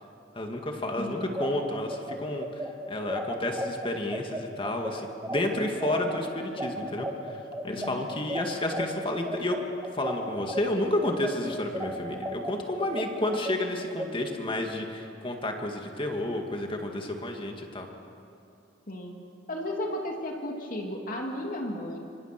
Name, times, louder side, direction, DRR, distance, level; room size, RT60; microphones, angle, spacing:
voice 1, 0.4-7.4 7.6-9.6 9.9-17.9, left 1 dB, 25° left, 3 dB, 2.1 m, -31 dB
voice 2, 1.0-1.4 7.7-8.0 18.9-19.1 19.5-22.0, left 1 dB, 45° left, 1 dB, 2.7 m, -34 dB
sound 1, 1.2-10.6 11.0-14.1, right 1 dB, 15° right, 1.6 m, -34 dB
25.5 x 25.5 x 6.1 m, 2.6 s
head